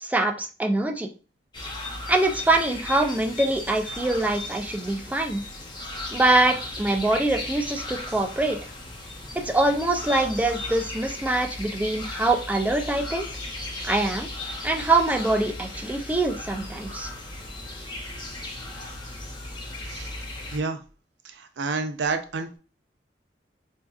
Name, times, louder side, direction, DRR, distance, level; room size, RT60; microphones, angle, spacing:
voice 1, 0.0-1.1 2.1-5.4 6.1-8.6 9.4-13.3 13.8-14.3 14.6-17.1, right 2 dB, 10° right, 4 dB, 0.4 m, -24 dB
sound 1, 1.5-20.6, left 2 dB, 25° left, 0.7 m, -36 dB
voice 2, 21.2-22.6, right 4 dB, 75° right, 8 dB, 0.5 m, -29 dB
4.4 x 2.7 x 2.3 m, 0.37 s
head